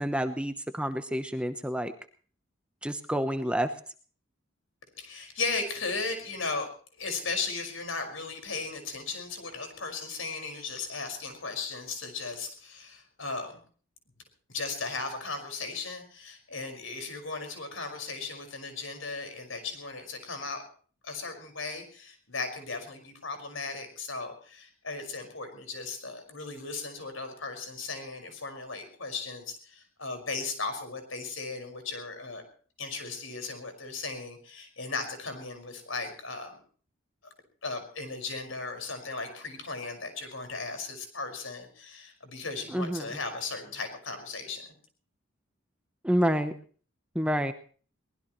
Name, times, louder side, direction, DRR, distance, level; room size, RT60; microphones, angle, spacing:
voice 1, 0.0-1.9 2.8-3.7 42.7-43.1 46.0-46.5 47.1-47.5, equal, 5° right, 8 dB, 0.9 m, -28 dB
voice 2, 5.0-6.7 7.0-13.6 14.5-20.6 21.0-32.4 32.8-36.6 37.6-44.6, left 4 dB, 75° left, 5 dB, 5.5 m, -36 dB
23.0 x 19.5 x 3.1 m, 0.42 s
head